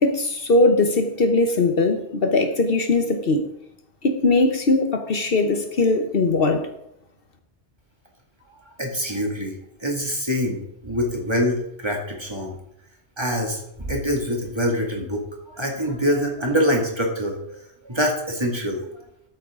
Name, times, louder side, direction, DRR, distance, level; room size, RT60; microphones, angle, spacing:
voice 1, 0.0-3.5 4.0-6.7, left 2 dB, 60° left, 6 dB, 1.2 m, -20 dB
voice 2, 8.8-9.5 9.8-12.5 13.2-18.8, equal, 25° right, 0 dB, 2.2 m, -25 dB
13.5 x 8.1 x 3.7 m, 0.80 s
omnidirectional pair, 1.1 m